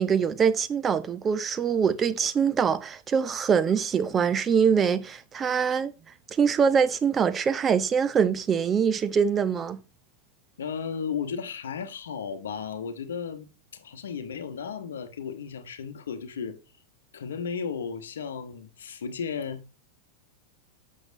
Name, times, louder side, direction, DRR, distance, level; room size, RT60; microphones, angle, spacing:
voice 1, 0.0-5.9 6.3-9.8, right 7 dB, 20° right, 0.7 m, -24 dB
voice 2, 10.6-16.6 17.1-19.8, left 6 dB, 65° left, 0.9 m, -34 dB
7.9 x 7.3 x 2.7 m
figure-of-eight pair, 90°, 0 cm